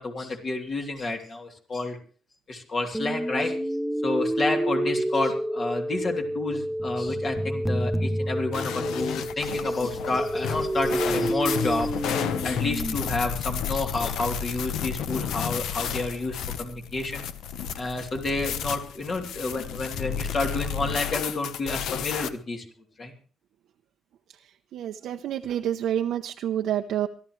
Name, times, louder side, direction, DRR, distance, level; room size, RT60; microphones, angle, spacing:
voice 1, 0.0-2.0 2.5-3.5 4.0-11.9 12.4-17.2 17.8-22.6 23.0-23.1, left 2 dB, 45° left, 2 dB, 3.2 m, -30 dB
sound 1, 2.9-12.9, right 1 dB, 5° right, 0.9 m, -28 dB
sound 2, 8.5-22.3, left 8 dB, 80° left, 1.1 m, -32 dB
voice 2, 24.7-27.1, right 11 dB, 75° right, 4 dB, 0.8 m, -28 dB
23.5 x 12.5 x 3.3 m, 0.40 s
cardioid pair, 90°, 0 cm